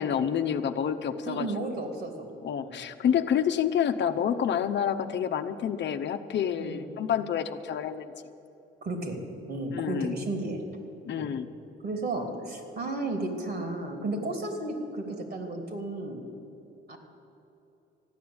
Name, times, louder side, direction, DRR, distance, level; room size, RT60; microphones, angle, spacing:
voice 1, 0.0-1.5 2.4-8.1 9.7-10.2 11.1-11.5, left 8 dB, 65° left, 8 dB, 0.8 m, -28 dB
voice 2, 1.2-2.3 2.6-2.8 6.6-6.8 8.8-9.2 9.5-10.6 11.2-11.3 11.8-16.3 16.9-17.0, right 2 dB, 55° right, 4 dB, 2.9 m, -33 dB
14.0 x 10.0 x 8.7 m, 2.9 s
cardioid pair, 90°, 20 cm